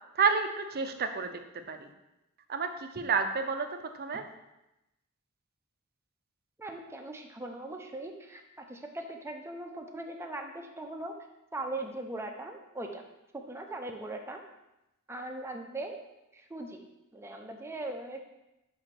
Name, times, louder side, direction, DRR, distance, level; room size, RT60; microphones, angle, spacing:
voice 1, 0.1-1.4 1.7-1.9 2.5-3.7 3.9-4.3, right 5 dB, 45° right, 7 dB, 0.7 m, -30 dB
voice 2, 6.6-11.1 11.5-13.0 13.3-14.4 15.1-16.0 16.3-16.8 17.1-18.2, right 2 dB, 10° right, 3 dB, 0.7 m, -40 dB
5.4 x 5.1 x 5.9 m, 0.93 s
head